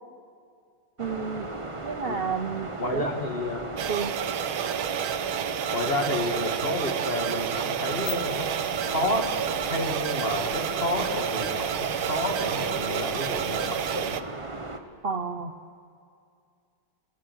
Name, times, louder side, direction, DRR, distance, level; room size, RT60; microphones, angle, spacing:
sound 1, 1.0-14.8, right 2 dB, 20° right, 1.1 m, -36 dB
voice 1, 1.0-1.5 1.8-3.1 3.9-4.2 15.0-15.5, right 5 dB, 50° right, 8 dB, 0.7 m, -31 dB
voice 2, 2.8-3.7 5.7-8.5 8.8-9.3 9.7-14.2, left 2 dB, 30° left, 3 dB, 2.4 m, -30 dB
sound 2, 3.8-14.2, right 10 dB, 80° right, 1.7 m, -30 dB
cassette tape hiss poof on, 7.8-14.0, left 7 dB, 65° left, 1.9 m, -43 dB
28.0 x 17.0 x 9.3 m, 2.4 s
omnidirectional pair, 2.3 m